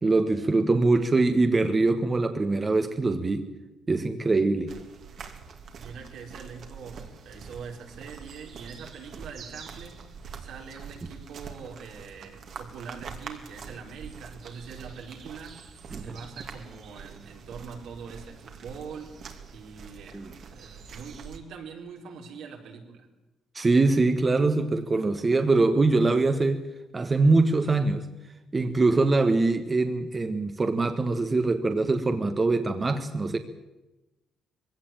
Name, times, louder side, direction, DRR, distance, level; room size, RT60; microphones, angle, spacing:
voice 1, 0.0-3.5 3.9-4.7 15.9-16.2 20.1-20.3 23.5-26.7 26.9-28.1 28.5-33.4, right 3 dB, 30° right, 7 dB, 1.5 m, -23 dB
sound 1, 4.7-21.4, right 6 dB, 65° right, 2.7 m, -44 dB
voice 2, 5.7-10.0 10.4-15.6 15.9-23.1, right 5 dB, 80° right, 1 dB, 4.3 m, -43 dB
21.0 x 17.0 x 9.0 m, 1.0 s
cardioid pair, 90°, 0 cm